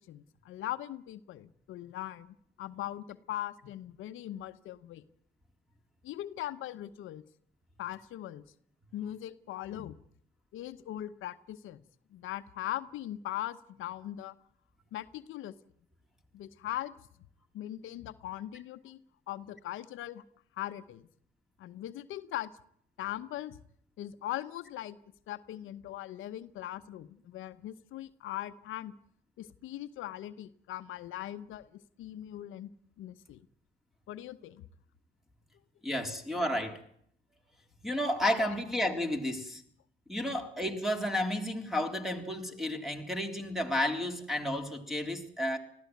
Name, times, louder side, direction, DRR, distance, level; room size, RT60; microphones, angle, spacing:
voice 1, 0.0-5.0 6.0-7.2 7.8-8.4 8.9-10.0 10.5-11.8 12.1-14.3 14.9-15.6 16.3-16.9 17.5-19.0 19.3-20.2 20.6-21.1 21.6-22.5 23.0-23.6 24.0-25.0 25.3-28.9 29.4-32.7 33.0-33.4 34.1-34.6, left 13 dB, 85° left, 1.0 m, -40 dB
voice 2, 35.8-36.8 37.8-39.6 40.1-45.6, left 1 dB, ahead, 3.6 m, -32 dB
20.0 x 14.5 x 9.3 m
cardioid pair, 90°, 20 cm